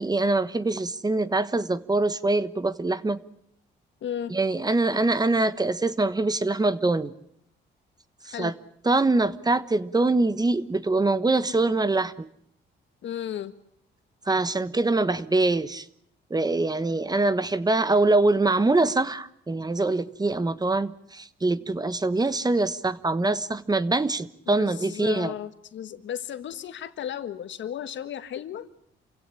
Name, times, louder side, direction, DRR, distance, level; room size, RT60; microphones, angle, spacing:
voice 1, 0.0-3.2 4.3-7.1 8.2-8.5 8.8-12.3 14.3-15.9 16.3-25.3, right 2 dB, 20° right, 1.2 m, -24 dB
voice 2, 4.0-4.3 8.3-8.5 13.0-13.5 24.5-28.7, left 10 dB, 70° left, 1.7 m, -34 dB
28.0 x 16.5 x 9.9 m
cardioid pair, 90°, 20 cm